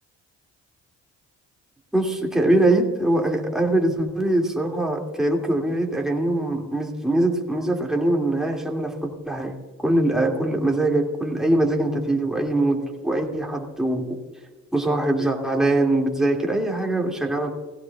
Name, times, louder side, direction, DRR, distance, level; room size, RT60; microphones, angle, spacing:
voice 1, 1.9-9.5 9.8-14.2 14.7-17.5, right 1 dB, ahead, 0 dB, 2.4 m, -22 dB
17.0 x 16.5 x 2.4 m, 1.3 s
cardioid pair, 90°, 30 cm